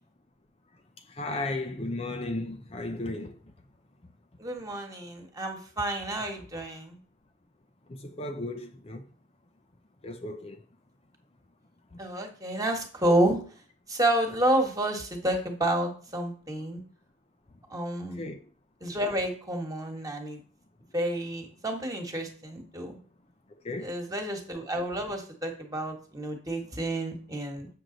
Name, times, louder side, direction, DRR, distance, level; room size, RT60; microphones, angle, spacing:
voice 1, 1.1-3.4 7.9-9.0 10.0-10.6 11.9-12.0 18.1-18.4 23.6-24.0, left 2 dB, 30° left, 0.6 m, -35 dB
voice 2, 4.4-7.0 12.0-13.4 13.9-16.8 17.7-18.2 18.8-20.4 20.9-23.0 23.8-27.7, right 1 dB, 20° right, 1.6 m, -29 dB
7.6 x 6.5 x 4.0 m
head